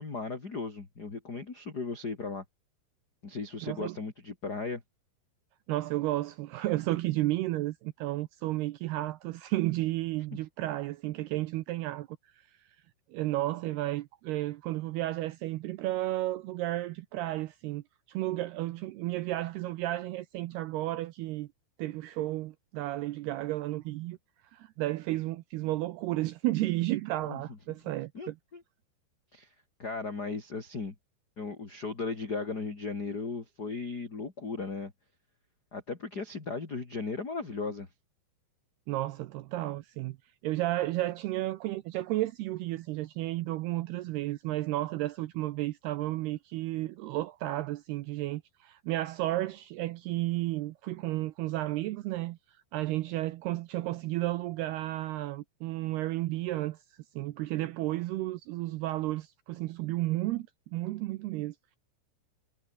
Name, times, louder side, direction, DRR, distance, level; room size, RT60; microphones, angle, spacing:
voice 1, 0.0-2.4 3.2-4.8 27.3-27.4 28.1-28.6 29.3-29.5 29.8-30.9 31.4-34.9 35.7-37.9, left 4 dB, 25° left, 2.8 m, -36 dB
voice 2, 3.6-4.0 5.7-12.1 12.3-12.4 13.1-21.5 21.8-24.2 24.5-28.4 38.9-40.2 40.4-52.4 52.7-56.8 57.2-61.8, right 17 dB, 85° right, 2.3 m, -32 dB
omnidirectional pair, 5.5 m